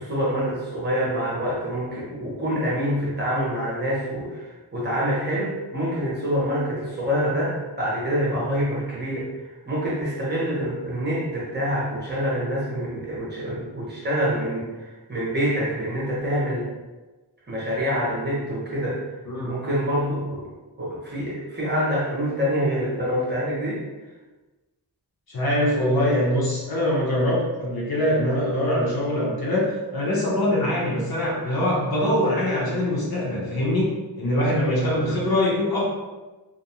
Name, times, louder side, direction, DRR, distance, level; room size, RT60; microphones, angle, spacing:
voice 1, 0.0-16.7 17.5-19.0 19.4-20.5 20.8-23.8 34.8-35.0, equal, 25° right, -7 dB, 0.7 m, -26 dB
voice 2, 25.3-33.9 34.2-35.8, left 1 dB, 55° left, -5 dB, 0.8 m, -23 dB
2.5 x 2.2 x 2.8 m, 1.2 s
wide cardioid pair, 160°, 44 cm